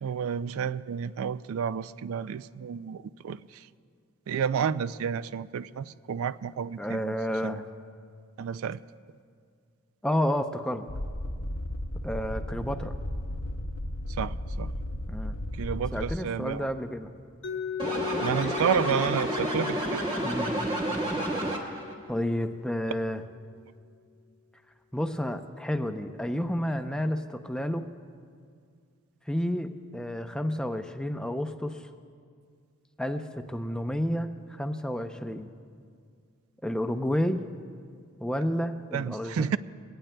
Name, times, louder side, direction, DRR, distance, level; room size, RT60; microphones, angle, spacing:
voice 1, 0.0-3.7 4.3-7.1 7.4-7.6 8.4-8.8 14.2-14.7 15.5-16.7 18.2-20.1 38.9-39.6, right 7 dB, 80° right, 16 dB, 0.3 m, -30 dB
voice 2, 6.8-7.6 10.0-10.8 12.0-12.9 15.1-15.4 15.9-17.1 20.2-20.5 22.1-23.2 24.9-27.8 29.3-31.8 33.0-35.5 36.6-37.4 38.2-39.5, equal, 5° left, 7 dB, 0.5 m, -30 dB
sound 1, 10.9-16.1, left 1 dB, 75° left, 0.8 m, -34 dB
Mallet percussion, 17.4-23.3, left 8 dB, 55° left, 0.9 m, -38 dB
sound 2, 17.8-21.9, right 1 dB, 20° right, 1.4 m, -30 dB
23.5 x 17.5 x 2.2 m, 2.1 s
head